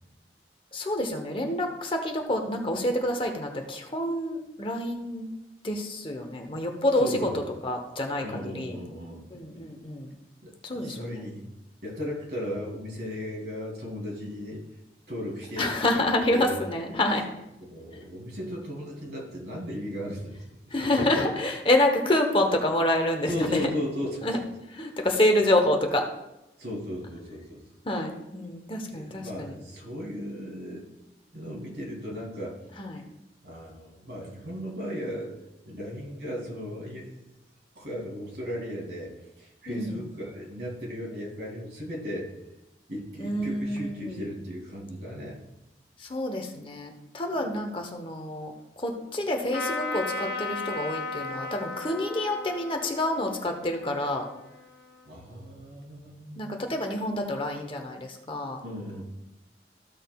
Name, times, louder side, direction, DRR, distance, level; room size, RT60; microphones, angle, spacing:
voice 1, 0.7-5.3 5.6-7.3 7.6-8.8 9.3-10.1 10.6-11.3 15.6-17.2 20.7-23.7 24.2-24.4 24.7-26.0 27.8-29.6 32.8-33.0 39.7-40.0 43.2-44.3 46.0-54.2 56.4-58.6, left 1 dB, 30° left, 3 dB, 0.9 m, -27 dB
voice 2, 7.0-7.5 8.2-9.2 10.4-11.5 11.8-14.6 15.1-15.7 15.9-16.6 17.6-20.3 23.3-24.2 26.6-27.6 28.9-30.8 31.3-32.6 33.4-35.3 35.6-37.2 37.7-42.3 42.9-45.4 47.3-47.5 55.0-56.8 58.6-59.0, equal, 75° right, -2 dB, 2.7 m, -36 dB
Trumpet, 49.5-55.0, left 3 dB, 70° left, 0.9 m, -36 dB
14.5 x 6.2 x 2.3 m, 0.93 s
head